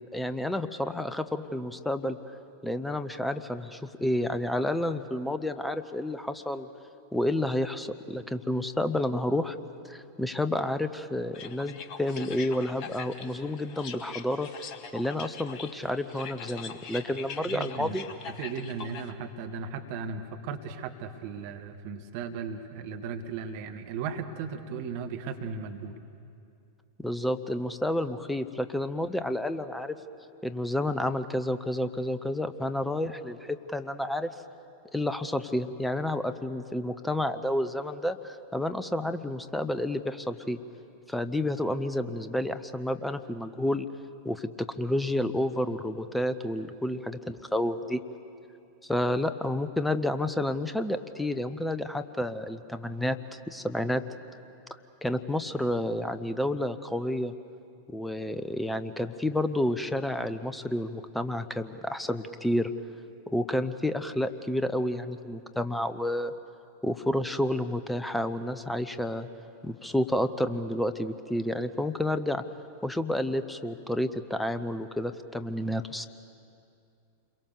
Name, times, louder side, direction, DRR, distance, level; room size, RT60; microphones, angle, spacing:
voice 1, 0.0-2.2 2.6-6.7 7.1-9.5 9.8-14.5 14.9-18.0 27.0-30.0 30.4-34.3 34.9-40.6 41.1-43.9 44.2-48.0 48.8-53.2 53.5-54.0 55.0-57.3 57.9-62.7 63.3-66.3 66.8-69.3 69.6-72.4 72.8-76.1, left 1 dB, 5° left, 11 dB, 0.9 m, -30 dB
sound 1, 11.3-19.1, left 6 dB, 40° left, 1.3 m, -43 dB
voice 2, 17.1-18.0 18.3-26.0, right 5 dB, 45° right, 6 dB, 1.6 m, -36 dB
28.5 x 23.0 x 6.8 m, 2.5 s
figure-of-eight pair, 90°, 0 cm